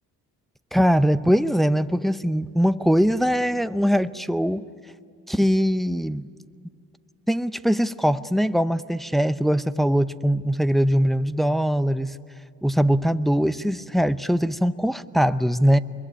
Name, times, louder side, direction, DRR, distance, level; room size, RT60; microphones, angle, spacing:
voice 1, 0.7-4.6 5.3-6.3 7.3-12.2 12.6-15.8, equal, ahead, 12 dB, 0.6 m, -21 dB
24.5 x 22.5 x 9.9 m, 2.3 s
cardioid pair, 90°, 32 cm